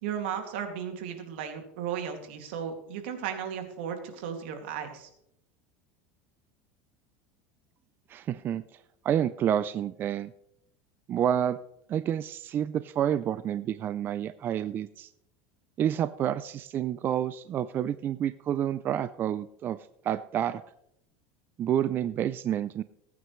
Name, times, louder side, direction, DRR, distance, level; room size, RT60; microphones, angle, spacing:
voice 1, 0.0-5.1, right 8 dB, 80° right, 5 dB, 2.5 m, -35 dB
voice 2, 8.1-8.6 9.0-10.3 11.1-11.6 11.9-15.1 15.8-19.8 20.0-20.6 21.6-22.8, right 10 dB, 35° right, 14 dB, 0.4 m, -29 dB
20.0 x 9.4 x 3.2 m, 0.76 s
supercardioid pair, 130°, 6 cm